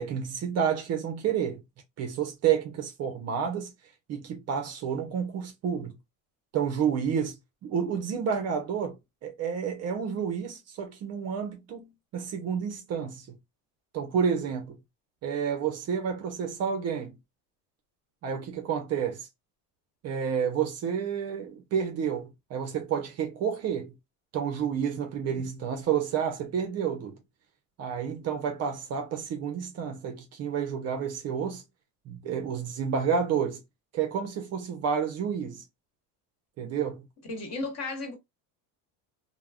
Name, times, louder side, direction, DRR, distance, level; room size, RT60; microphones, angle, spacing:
voice 1, 0.0-1.6 2.0-3.7 4.1-5.9 6.5-7.4 7.6-11.9 12.1-13.4 13.9-14.8 15.2-17.2 18.2-19.3 20.0-23.9 24.3-27.2 27.8-31.6 32.1-33.6 33.9-35.6 36.6-37.1, right 7 dB, 35° right, 0.5 m, -30 dB
voice 2, 37.3-38.1, left 2 dB, 35° left, 1.2 m, -35 dB
2.2 x 2.0 x 3.4 m
cardioid pair, 135°, 44 cm